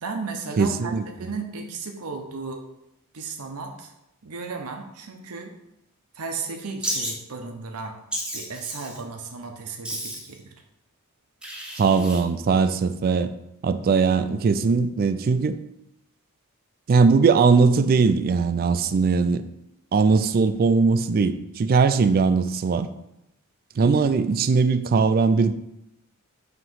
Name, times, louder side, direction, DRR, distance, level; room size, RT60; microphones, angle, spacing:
voice 1, 0.0-2.6 3.1-3.9 4.2-5.5 6.1-8.0 8.3-10.5, right 4 dB, 80° right, 4 dB, 0.7 m, -35 dB
voice 2, 0.6-1.0 11.8-13.3 13.6-15.6 16.9-19.4 19.9-22.9 23.8-25.5, right 4 dB, 40° right, 12 dB, 0.3 m, -20 dB
Wild animals, 6.8-7.1 8.1-9.0 9.8-10.4 11.4-12.2, equal, 5° right, 0.7 m, -32 dB
5.7 x 3.0 x 5.5 m, 0.84 s
head